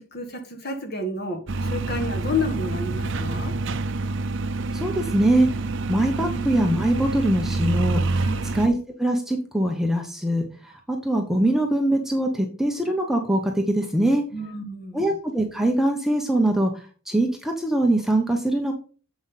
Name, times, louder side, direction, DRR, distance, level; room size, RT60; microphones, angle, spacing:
voice 1, 0.0-3.5 6.2-6.4 8.2-8.5 14.3-15.1, left 2 dB, 45° left, 1.6 m, -31 dB
sound 1, 1.5-8.7, right 3 dB, 55° right, 0.6 m, -27 dB
voice 2, 4.7-5.5 5.9-8.0 8.5-10.5 10.9-14.2 14.9-16.7 17.1-18.7, right 1 dB, ahead, 0.8 m, -22 dB
7.6 x 5.7 x 4.1 m
head